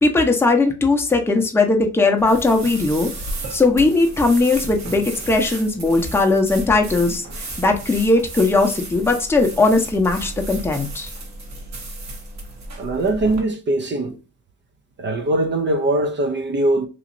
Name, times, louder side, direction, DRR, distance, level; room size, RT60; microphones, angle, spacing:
voice 1, 0.0-3.1 3.5-11.1, left 3 dB, 10° left, 0.7 m, -18 dB
sound 1, 2.2-13.4, right 2 dB, 65° right, 1.2 m, -34 dB
voice 2, 12.8-14.2 15.0-16.9, right 2 dB, 40° right, 0.5 m, -21 dB
3.0 x 2.7 x 2.5 m
cardioid pair, 90°, 30 cm